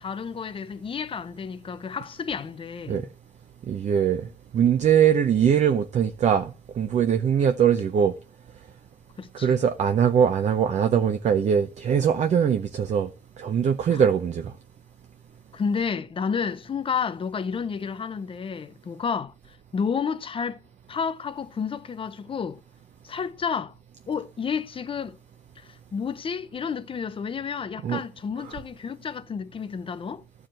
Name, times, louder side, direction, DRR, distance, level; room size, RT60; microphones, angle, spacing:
voice 1, 0.0-3.1 9.2-9.6 13.9-14.0 15.5-19.3 19.7-20.6 20.9-22.6 23.0-23.7 24.1-25.2 25.6-30.2, left 6 dB, 30° left, 0.8 m, -31 dB
voice 2, 3.7-4.3 4.5-8.1 9.3-13.1 13.4-14.5 27.8-28.0 28.4-28.5, right 8 dB, 45° right, 0.7 m, -22 dB
12.0 x 4.8 x 7.5 m
cardioid pair, 110°, 17 cm